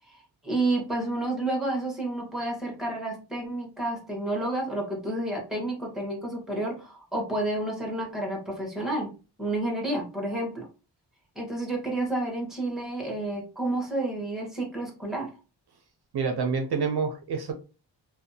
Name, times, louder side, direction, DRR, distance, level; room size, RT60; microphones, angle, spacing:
voice 1, 0.4-9.1 9.4-10.7 11.3-15.3, right 2 dB, ahead, 1.0 m, -30 dB
voice 2, 16.1-17.5, right 5 dB, 60° right, 0.5 m, -27 dB
2.6 x 2.2 x 2.6 m
wide cardioid pair, 95°, 44 cm